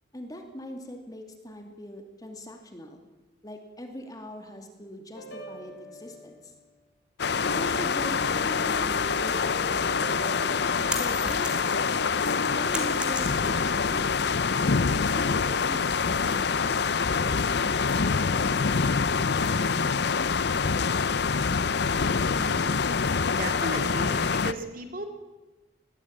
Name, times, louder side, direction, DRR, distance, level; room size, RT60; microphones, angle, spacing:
voice 1, 0.1-3.0 3.4-6.5 7.5-10.5 10.8-12.0 12.5-14.1 15.0-18.8 19.1-20.0, equal, 20° left, 4 dB, 2.6 m, -42 dB
sound 1, 5.1-6.5 7.4-11.3 12.2-12.8, equal, 80° left, 3.4 m, -40 dB
sound 2, 7.2-24.5, left 5 dB, 60° left, 0.6 m, -25 dB
sound 3, 10.9-11.9 12.3-13.7, right 1 dB, 5° right, 2.5 m, -35 dB
voice 2, 22.3-22.7 23.3-25.0, right 1 dB, 45° right, 5 dB, 2.4 m, -35 dB
21.0 x 15.0 x 8.8 m, 1.1 s
head